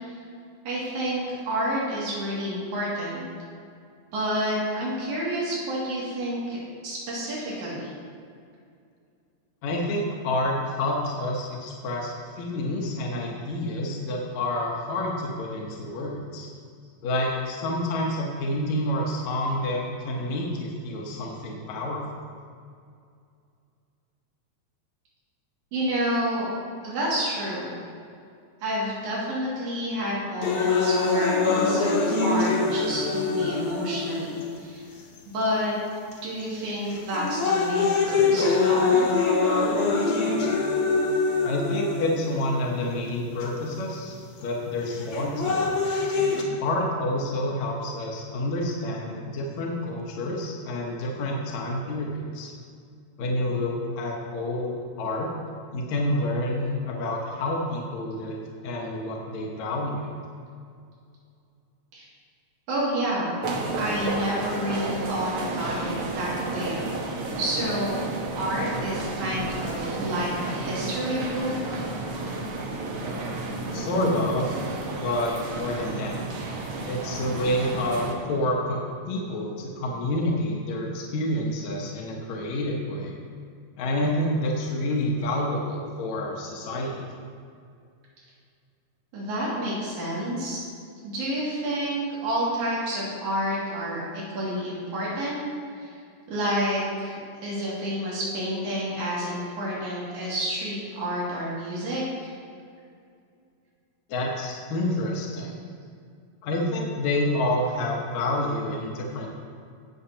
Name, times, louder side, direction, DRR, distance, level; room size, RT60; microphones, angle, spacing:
voice 1, 0.7-3.2 4.1-6.6 6.8-7.9 25.7-26.5 26.8-27.7 28.6-34.9 35.3-35.7 36.2-39.0 61.9-62.1 62.7-63.4 63.8-66.8 67.4-68.0 68.3-71.8 89.1-90.6 91.0-95.4 95.8-95.9 96.3-102.3, equal, 85° right, -7 dB, 3.7 m, -29 dB
voice 2, 9.6-16.5 17.0-22.0 41.4-45.7 46.6-52.5 53.2-55.3 55.7-60.1 73.7-74.5 75.0-76.2 76.9-83.2 83.8-87.0 104.1-105.6 106.4-109.3, left 1 dB, 75° left, -2 dB, 2.3 m, -28 dB
sound 1, 30.4-34.4 35.2-35.3 36.1-36.4 36.9-42.4 43.4-43.5 44.9-46.4, left 4 dB, 55° left, 1.9 m, -24 dB
sound 2, 63.4-78.1, right 2 dB, 60° right, 1.6 m, -32 dB
17.5 x 6.5 x 2.8 m, 2.3 s
omnidirectional pair, 3.3 m